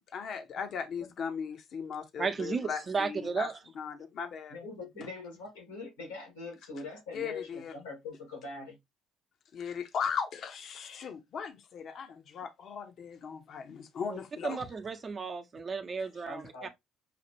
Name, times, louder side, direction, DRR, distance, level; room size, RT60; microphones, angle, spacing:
voice 1, 0.0-3.5 3.7-4.6 7.1-7.7 9.5-14.6 16.0-16.1, left 6 dB, 55° left, 0.8 m, -38 dB
voice 2, 2.2-3.5 14.1-14.2 14.4-16.7, right 5 dB, 40° right, 0.8 m, -34 dB
voice 3, 4.5-8.8 16.3-16.7, left 3 dB, 85° left, 1.8 m, -42 dB
5.7 x 2.5 x 2.9 m
hypercardioid pair, 55°, 0 cm